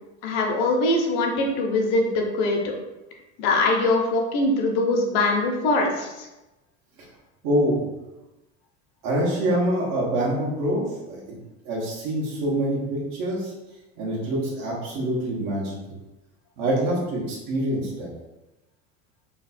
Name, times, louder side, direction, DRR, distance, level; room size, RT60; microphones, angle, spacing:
voice 1, 0.2-2.7 3.4-6.3, left 2 dB, 65° left, 1 dB, 0.9 m, -22 dB
voice 2, 7.4-7.9 9.0-11.4 11.6-13.5 14.0-16.0 16.6-18.1, right 1 dB, 65° right, -5 dB, 1.4 m, -25 dB
3.2 x 2.3 x 4.2 m, 1.0 s
supercardioid pair, 135°, 35 cm